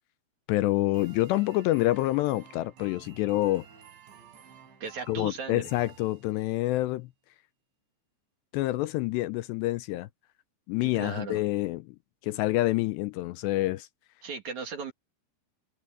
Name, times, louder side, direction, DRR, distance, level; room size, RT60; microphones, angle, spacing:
voice 1, 0.5-3.7 5.1-7.1 8.5-10.1 10.7-12.0 12.2-13.9, left 17 dB, 85° left, 2.7 m, -27 dB
sound 1, 0.9-6.7, right 7 dB, 85° right, 6.2 m, -53 dB
voice 2, 4.8-5.7 10.8-11.4 14.2-14.9, right 5 dB, 45° right, 3.4 m, -37 dB
omnidirectional pair, 5.2 m